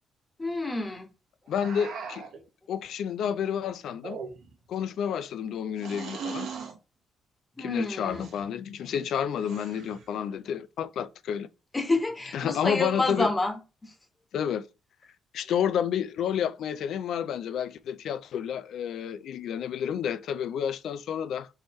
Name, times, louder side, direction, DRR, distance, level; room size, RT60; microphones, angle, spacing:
voice 1, 0.4-1.1 7.6-8.3 11.7-13.9, left 2 dB, 20° left, 1.2 m, -29 dB
voice 2, 1.5-2.2 2.7-4.2 4.7-6.5 7.6-11.5 12.3-13.3 14.3-14.7 15.3-21.5, left 8 dB, 75° left, 0.3 m, -30 dB
sound 1, 1.5-2.4 3.9-4.7 5.8-6.8 8.0-8.4 9.4-10.1, right 6 dB, 75° right, 1.0 m, -39 dB
4.6 x 3.0 x 3.1 m
cardioid pair, 90°, 0 cm